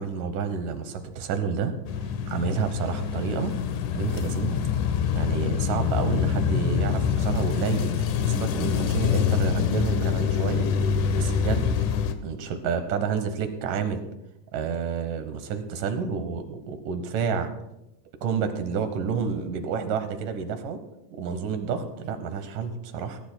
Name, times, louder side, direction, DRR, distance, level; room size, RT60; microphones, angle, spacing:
voice 1, 0.0-1.7 2.3-3.6 3.9-4.6 5.1-7.9 8.3-10.7 11.1-11.7 12.2-14.0 14.5-17.5 18.2-20.8 21.1-23.2, right 6 dB, 90° right, 8 dB, 2.7 m, -29 dB
sound 1, 1.9-12.1, left 7 dB, 80° left, 2.4 m, -25 dB
21.5 x 14.5 x 2.2 m, 0.88 s
omnidirectional pair, 3.6 m